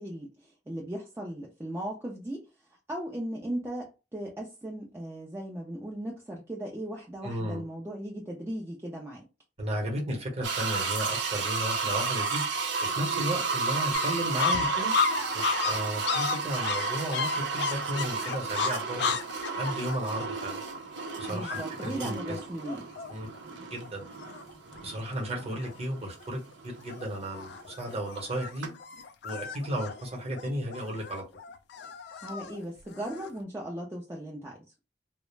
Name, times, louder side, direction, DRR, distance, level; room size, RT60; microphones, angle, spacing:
voice 1, 0.0-2.4 2.9-9.2 21.3-22.8 32.2-34.6, right 1 dB, 15° right, 0.4 m, -37 dB
voice 2, 7.2-7.6 9.6-12.4 12.8-14.9 15.3-19.2 19.5-20.6 21.2-22.4 23.1-23.3 23.7-24.0 24.8-28.7 29.2-31.2, right 1 dB, 35° right, 0.8 m, -34 dB
sound 1, 10.4-28.3 28.6-28.7, right 4 dB, 85° right, 0.6 m, -33 dB
sound 2, 13.9-23.4 23.8-23.9 24.1-24.8 25.1-25.7 26.2-26.5 26.9-33.4, left 5 dB, 65° left, 0.3 m, -34 dB
2.3 x 2.0 x 3.1 m
head